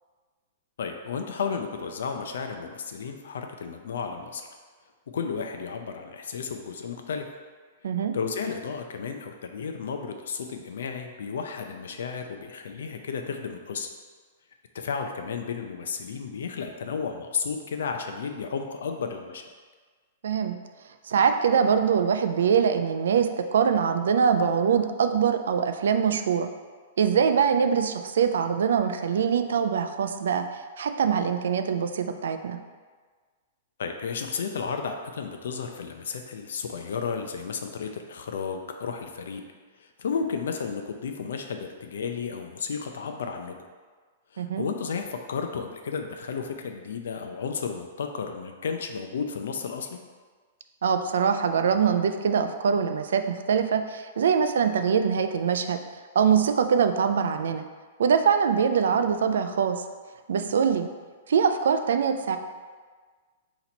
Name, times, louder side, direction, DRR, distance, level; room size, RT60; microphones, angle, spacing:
voice 1, 0.8-4.5 5.1-7.3 8.1-13.9 14.7-19.5 33.8-39.4 39.8-43.5 44.3-50.0, left 5 dB, 80° left, 4 dB, 0.4 m, -33 dB
voice 2, 20.2-20.6 21.0-26.5 27.0-32.6 44.4-44.7 50.8-55.8 56.2-57.6 58.0-59.8 60.3-60.9 61.3-62.4, right 7 dB, 80° right, 8 dB, 0.3 m, -23 dB
4.0 x 2.9 x 4.2 m, 1.5 s
hypercardioid pair, 175°, 0 cm